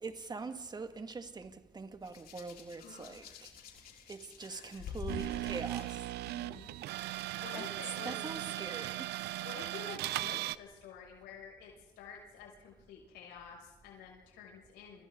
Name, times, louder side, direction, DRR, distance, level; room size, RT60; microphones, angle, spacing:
voice 1, 0.0-3.5 4.1-6.0 7.5-9.1, right 4 dB, 25° right, 2.2 m, -43 dB
Hands, 2.0-6.0 7.0-7.2, left 6 dB, 65° left, 4.7 m, -47 dB
sound 1, 5.1-10.6, right 16 dB, 80° right, 0.8 m, -38 dB
voice 2, 6.2-8.2 9.4-15.1, left 6 dB, 90° left, 7.1 m, -50 dB
29.5 x 27.0 x 4.0 m
cardioid pair, 110°, 17 cm